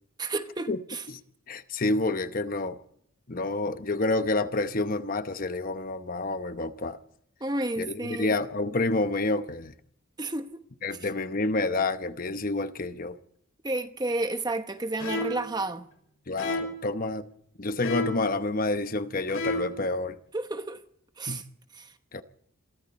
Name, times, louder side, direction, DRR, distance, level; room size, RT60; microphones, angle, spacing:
voice 1, 0.2-1.0 7.4-8.4 10.2-10.6 13.6-15.8 20.3-20.8 21.2-21.4 21.7-21.9, right 2 dB, 20° right, 1.0 m, -31 dB
voice 2, 1.5-2.8 3.3-7.0 7.8-9.7 10.8-13.2 16.3-17.3 17.6-20.2 21.3-21.4 22.1-22.2, left 2 dB, 40° left, 0.9 m, -28 dB
sound 1, 15.0-15.5 16.4-16.8 17.8-18.3 19.3-19.8, left 1 dB, 85° left, 5.8 m, -32 dB
27.5 x 23.0 x 4.2 m
head